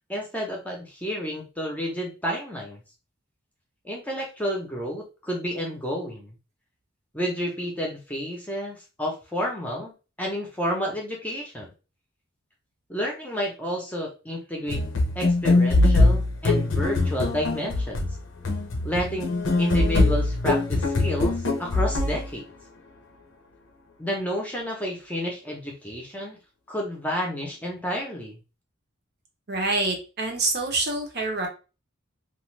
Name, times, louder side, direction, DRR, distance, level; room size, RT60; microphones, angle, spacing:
voice 1, 0.1-2.8 3.8-6.3 7.1-9.9 10.2-11.7 12.9-14.8 15.1-18.1 18.8-21.3 21.6-22.5 24.0-26.4 26.7-28.4, equal, 5° left, -1 dB, 0.7 m, -30 dB
sound 1, 14.7-22.3, left 2 dB, 65° left, 0.6 m, -22 dB
voice 2, 29.5-31.5, right 2 dB, 50° right, 2 dB, 0.8 m, -26 dB
2.5 x 2.4 x 3.1 m, 0.31 s
head